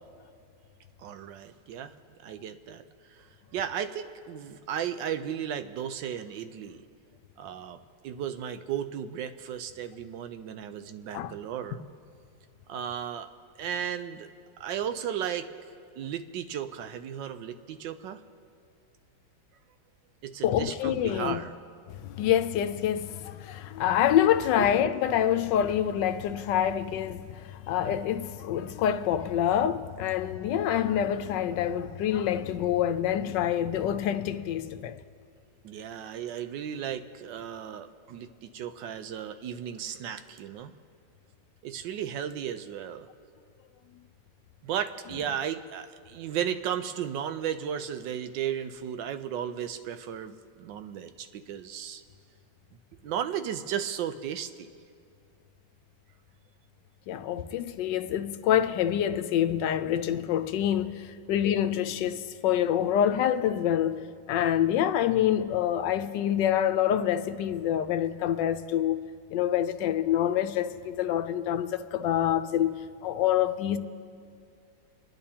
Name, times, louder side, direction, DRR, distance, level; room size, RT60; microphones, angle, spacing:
voice 1, 1.0-1.9 2.2-2.8 3.1-3.3 3.5-6.8 7.4-7.8 8.0-11.8 12.7-13.3 13.6-14.3 14.6-15.5 16.0-18.2 20.2-21.5 24.6-24.9 35.6-40.7 41.6-43.1 44.6-52.0 53.0-54.7, right 9 dB, 85° right, 1.3 m, -35 dB
voice 2, 20.4-21.4 21.9-35.0 57.1-64.0 64.3-69.0 69.3-73.8, left 10 dB, 80° left, 1.2 m, -26 dB
28.5 x 10.5 x 2.8 m
omnidirectional pair, 1.9 m